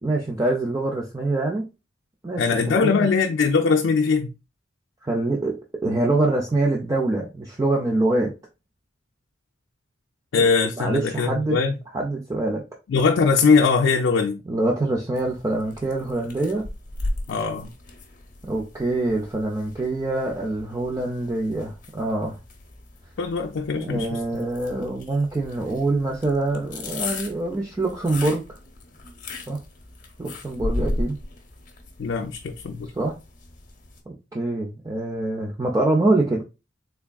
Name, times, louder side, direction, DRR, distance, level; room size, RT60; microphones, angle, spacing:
voice 1, 0.0-1.6 2.2-2.4 2.7-3.1 5.0-5.6 5.8-8.3 10.4-10.5 10.8-11.6 11.9-12.6 14.5-16.6 18.4-22.4 23.8-28.4 29.5-29.6 30.2-31.2 33.0-33.2 34.1-36.4, right 2 dB, 20° right, 0.4 m, -24 dB
voice 2, 2.4-4.3 10.3-11.7 12.9-14.4 17.3-17.7 23.2-24.4 32.0-32.9, left 5 dB, 65° left, 0.4 m, -21 dB
sound 1, 15.2-34.0, left 2 dB, 40° left, 0.8 m, -36 dB
3.5 x 3.4 x 2.3 m
head